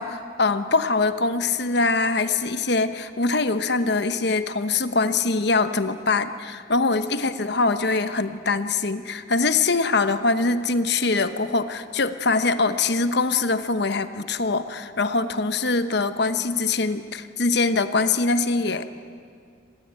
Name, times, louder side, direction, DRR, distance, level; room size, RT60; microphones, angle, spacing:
voice 1, 0.0-18.9, left 3 dB, 55° left, 10 dB, 1.0 m, -23 dB
26.0 x 18.5 x 9.3 m, 2.2 s
head